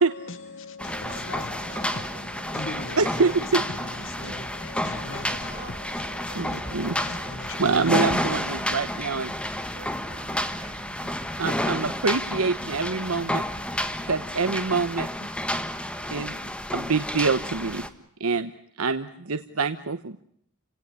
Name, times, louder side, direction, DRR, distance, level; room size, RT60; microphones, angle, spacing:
voice 1, 0.0-8.1, left 3 dB, 60° left, 1.2 m, -40 dB
sound 1, 0.8-17.9, left 1 dB, 5° left, 1.5 m, -31 dB
voice 2, 0.9-1.2 1.7-4.4 5.2-6.6 7.1-7.4 9.5-12.2, right 4 dB, 50° right, 7.3 m, -48 dB
voice 3, 3.0-3.6 6.3-7.0 7.6-9.3 11.4-13.4 14.1-15.1 16.1-16.3 16.7-17.8 18.2-18.5 18.8-20.2, right 4 dB, 75° right, 1.1 m, -25 dB
sound 2, 3.9-14.2, equal, 25° left, 6.8 m, -47 dB
30.0 x 17.5 x 9.6 m
head